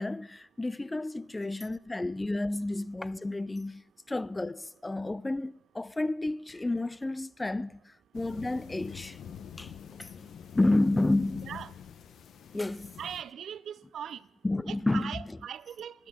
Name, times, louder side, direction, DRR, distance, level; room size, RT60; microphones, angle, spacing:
voice 1, 0.0-3.8 4.1-9.2 9.6-9.7 10.0-10.1 10.5-11.5 12.5-12.9 14.4-15.2, left 2 dB, 15° left, 0.4 m, -30 dB
sound 1, 5.6-5.9 6.2-7.3 7.6-7.9 8.9-9.6, left 2 dB, 40° left, 2.7 m, -62 dB
sound 2, 8.1-13.2, left 8 dB, 65° left, 0.8 m, -46 dB
voice 2, 13.0-14.2 14.7-16.1, right 9 dB, 65° right, 0.4 m, -40 dB
12.0 x 11.0 x 6.1 m
cardioid pair, 90°, 0 cm